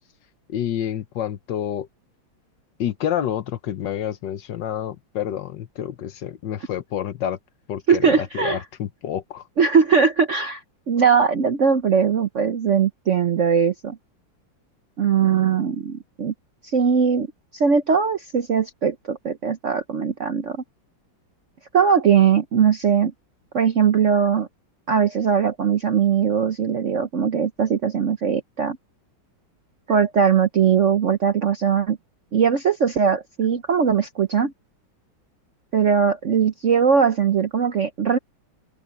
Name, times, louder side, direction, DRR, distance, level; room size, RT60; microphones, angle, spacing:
voice 1, 0.5-1.9 2.8-7.4 7.7-9.5, left 10 dB, 65° left, 1.4 m, -28 dB
voice 2, 7.9-8.6 9.6-10.6 10.9-14.0 15.0-16.3 16.6-17.3 17.5-20.6 21.7-23.1 23.5-24.5 24.9-28.8 29.9-32.0 32.3-34.5 35.7-38.2, right 7 dB, 55° right, 0.8 m, -20 dB
open air
omnidirectional pair, 2.3 m